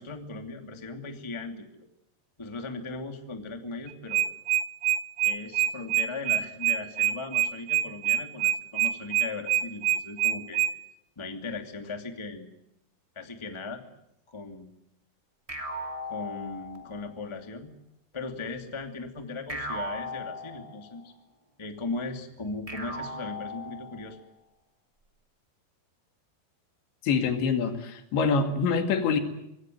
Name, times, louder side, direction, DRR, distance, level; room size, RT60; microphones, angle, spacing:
voice 1, 0.0-1.6 2.4-4.2 5.2-10.6 11.1-12.5 13.1-13.8 14.3-14.7 16.1-17.7 18.1-21.1 21.6-24.2, left 3 dB, 10° left, 5 dB, 1.6 m, -38 dB
sound 1, 3.9-10.7, right 12 dB, 60° right, 2.0 m, -25 dB
sound 2, 15.5-17.1 19.5-21.1 22.7-24.2, equal, 15° right, 1.3 m, -38 dB
voice 2, 27.0-29.2, left 5 dB, 85° left, 6 dB, 4.6 m, -25 dB
25.5 x 20.0 x 9.3 m, 0.82 s
omnidirectional pair, 5.0 m